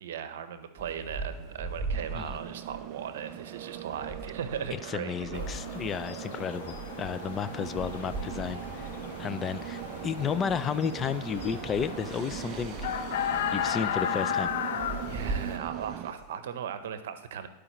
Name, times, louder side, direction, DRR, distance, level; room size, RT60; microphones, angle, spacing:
voice 1, 0.0-5.5 15.0-17.5, right 8 dB, 75° right, 11 dB, 0.7 m, -37 dB
sound 1, 0.8-16.4, right 3 dB, 25° right, 2.7 m, -42 dB
sound 2, 1.9-16.1, right 13 dB, 50° right, 0.3 m, -41 dB
voice 2, 4.9-8.9 9.2-12.8 13.5-14.5, left 7 dB, 30° left, 13 dB, 0.4 m, -32 dB
sound 3, 5.3-15.6, left 9 dB, 75° left, 0.7 m, -35 dB
12.5 x 4.9 x 3.0 m, 0.91 s
hypercardioid pair, 105°, 0 cm